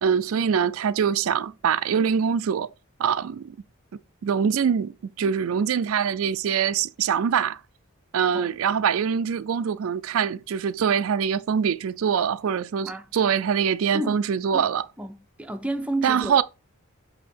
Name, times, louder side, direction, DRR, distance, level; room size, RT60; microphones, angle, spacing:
voice 1, 0.0-2.7 3.0-3.6 4.2-7.6 8.1-14.8 16.0-16.4, right 7 dB, 70° right, 0.4 m, -24 dB
voice 2, 15.0-16.4, right 1 dB, 5° right, 0.5 m, -31 dB
8.2 x 2.8 x 4.3 m
head